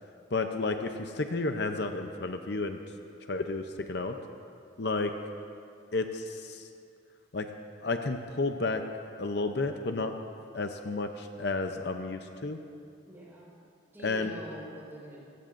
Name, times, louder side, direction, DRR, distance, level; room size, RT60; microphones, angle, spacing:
voice 1, 0.3-2.8 3.3-4.2 4.8-5.1 5.9-6.7 7.3-7.5 7.8-8.8 9.2-10.2 10.5-12.6 14.0-14.3, left 3 dB, 55° left, 6 dB, 0.6 m, -31 dB
voice 2, 13.1-13.5 13.9-15.3, right 1 dB, 10° right, -6 dB, 4.6 m, -45 dB
24.5 x 16.0 x 2.6 m, 2.5 s
head